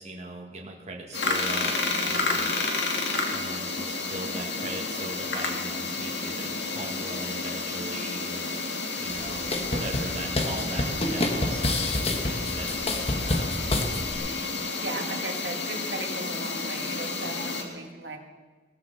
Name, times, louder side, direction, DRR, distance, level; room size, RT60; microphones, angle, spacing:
voice 1, 0.0-2.5 3.3-8.5 9.0-12.7 13.1-13.5, right 2 dB, 40° right, 0 dB, 2.0 m, -39 dB
sound 1, 1.1-17.6, left 3 dB, 75° left, 2.5 m, -30 dB
sound 2, 9.1-14.1, left 1 dB, 35° left, 1.4 m, -29 dB
voice 2, 14.8-18.2, right 3 dB, 90° right, 1 dB, 2.2 m, -37 dB
18.5 x 14.5 x 4.3 m, 1.4 s
head